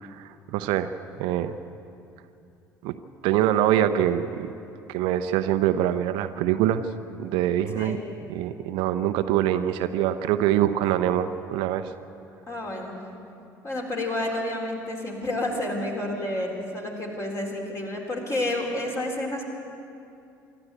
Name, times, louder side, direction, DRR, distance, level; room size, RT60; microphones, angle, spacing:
voice 1, 0.0-1.5 2.8-2.9 3.2-4.5 4.9-6.9 7.2-8.0 8.3-11.9, right 11 dB, 55° right, 10 dB, 0.7 m, -24 dB
voice 2, 12.5-13.0 13.6-19.5, left 1 dB, 30° left, 0 dB, 4.1 m, -30 dB
25.0 x 12.5 x 8.3 m, 2.7 s
figure-of-eight pair, 55°, 10 cm